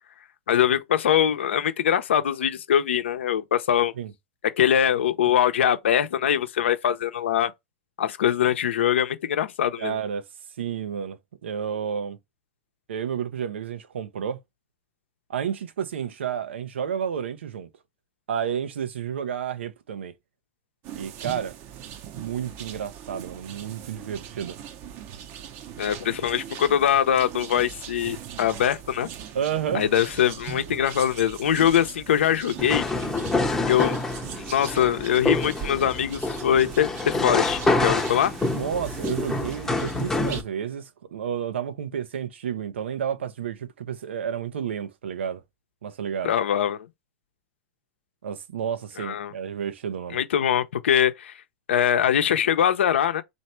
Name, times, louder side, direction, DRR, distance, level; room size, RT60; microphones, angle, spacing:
voice 1, 0.5-3.9 4.6-7.5 8.0-10.0 25.8-29.1 29.7-32.8 33.7-34.0 34.5-38.3 46.2-46.9 49.0-49.3 50.1-51.4 51.7-53.2, left 9 dB, 85° left, 0.7 m, -22 dB
voice 2, 9.8-10.3 10.6-12.2 12.9-14.4 15.3-17.7 18.3-20.1 20.9-21.5 22.2-24.6 29.3-29.8 38.5-45.4 45.8-46.3 48.2-50.2, right 8 dB, 85° right, 0.7 m, -31 dB
sound 1, 20.8-40.4, right 9 dB, 40° right, 0.7 m, -40 dB
sound 2, 32.6-40.4, left 2 dB, 5° left, 0.7 m, -27 dB
3.3 x 2.7 x 4.3 m
hypercardioid pair, 130°, 6 cm